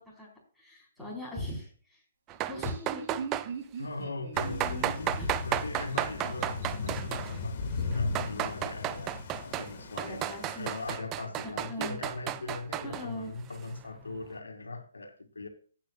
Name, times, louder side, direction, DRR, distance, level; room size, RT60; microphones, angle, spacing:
voice 1, 0.6-1.7 2.4-3.2 4.4-5.3 6.2-6.4 10.0-10.7 11.4-12.0 12.8-13.3, left 1 dB, ahead, -2 dB, 4.3 m, -40 dB
sound 1, 2.3-3.5 4.4-7.4 7.9-9.7 10.0-13.1, right 13 dB, 25° right, 0.4 m, -33 dB
Laughter, 2.3-6.9, right 5 dB, 50° right, 2.9 m, -42 dB
voice 2, 3.8-5.1 5.4-15.5, left 3 dB, 80° left, 6 dB, 2.2 m, -40 dB
Thunder / Rain, 4.3-11.0, left 4 dB, 45° left, 1.6 m, -37 dB
15.0 x 8.7 x 2.4 m, 0.41 s
figure-of-eight pair, 135°, 0 cm